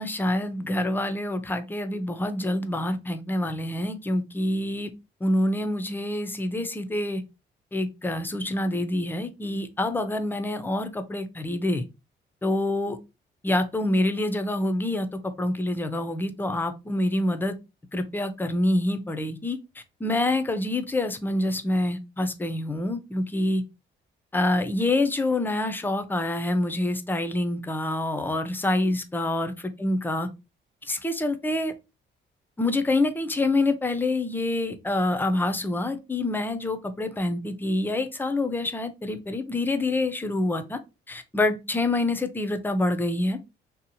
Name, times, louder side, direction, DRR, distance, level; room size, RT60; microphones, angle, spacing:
voice 1, 0.0-4.9 5.2-7.2 7.7-11.8 12.4-13.0 13.4-15.1 15.4-17.6 17.9-19.6 20.0-23.6 24.3-29.5 29.8-30.3 30.9-31.7 32.6-40.8 41.1-43.4, left 2 dB, 10° left, 0.4 m, -26 dB
2.7 x 2.0 x 2.7 m
cardioid pair, 90°, 20 cm